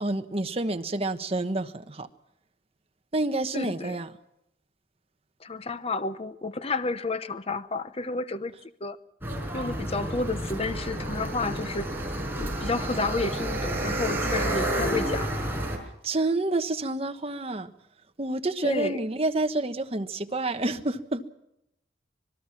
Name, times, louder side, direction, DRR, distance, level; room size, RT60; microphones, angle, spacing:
voice 1, 0.0-2.1 3.1-4.1 16.0-17.7 18.2-21.3, right 2 dB, 35° right, 1.3 m, -28 dB
voice 2, 3.5-4.0 5.4-8.5 8.8-9.0 9.5-11.9 12.4-15.3 18.6-19.0, left 3 dB, 35° left, 0.8 m, -31 dB
sound 1, 9.2-15.8, right 1 dB, 15° right, 5.2 m, -30 dB
25.5 x 20.5 x 6.0 m
head